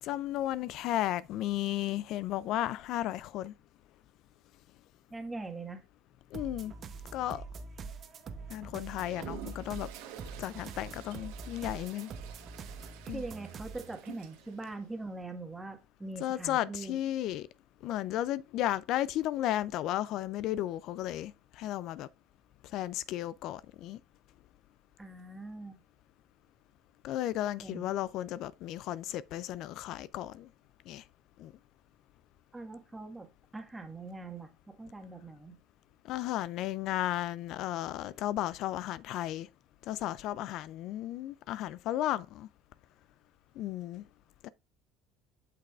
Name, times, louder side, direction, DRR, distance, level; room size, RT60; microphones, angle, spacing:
voice 1, 0.0-3.5 6.3-6.7 7.1-7.4 8.5-9.9 10.4-12.1 13.1-13.2 16.2-17.5 17.8-22.1 22.6-24.0 27.0-30.5 30.9-31.0 31.4-31.5 36.0-39.5 39.8-42.5 43.6-44.0 44.4-44.5, left 13 dB, 60° left, 0.3 m, -34 dB
voice 2, 5.1-5.8 13.0-17.0 25.0-25.8 27.6-27.9 32.5-35.6, right 3 dB, 15° right, 1.5 m, -42 dB
sound 1, 6.3-14.0, right 4 dB, 45° right, 0.9 m, -44 dB
Toilet flush, 8.9-14.7, right 10 dB, 75° right, 1.2 m, -50 dB
8.4 x 5.9 x 2.4 m
supercardioid pair, 85°, 0 cm